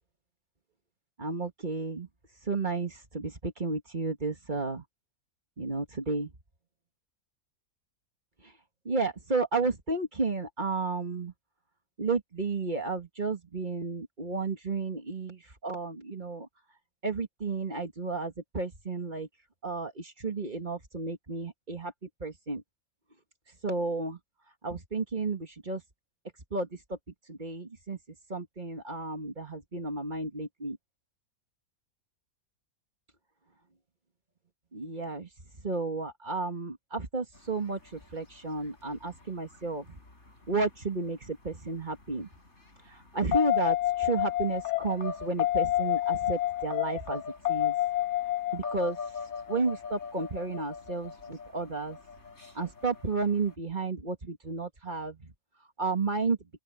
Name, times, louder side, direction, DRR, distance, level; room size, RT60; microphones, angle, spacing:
voice 1, 1.2-2.1 2.5-4.8 5.6-6.3 8.9-11.3 12.0-16.5 17.0-19.3 19.6-21.9 22.2-22.6 23.6-24.2 24.6-25.8 26.5-27.0 27.3-28.0 28.3-30.8 34.7-35.3 35.6-39.9 40.5-42.3 43.1-47.2 47.5-47.8 48.5-49.0 49.5-52.0 52.6-55.2 55.8-56.4, right 3 dB, 30° right, 2.0 m, -32 dB
sound 1, 43.3-53.5, left 13 dB, 50° left, 5.0 m, -30 dB
open air
omnidirectional pair, 1.6 m